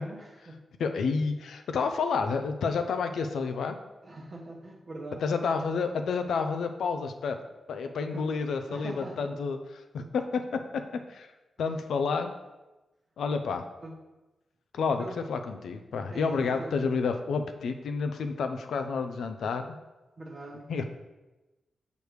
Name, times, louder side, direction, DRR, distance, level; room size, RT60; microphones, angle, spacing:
voice 1, 0.0-0.6 4.0-5.3 8.1-8.3 8.7-9.3 11.6-11.7 13.8-14.0 15.0-15.2 16.1-16.9 20.2-20.7, right 2 dB, 40° right, 0 dB, 0.9 m, -42 dB
voice 2, 0.8-3.8 5.2-7.4 7.7-9.6 9.9-10.6 10.9-11.3 11.6-12.3 13.2-13.7 14.7-19.8 20.7-20.8, left 5 dB, 85° left, 7 dB, 0.5 m, -30 dB
6.5 x 5.0 x 3.1 m, 1.1 s
wide cardioid pair, 125°, 0 cm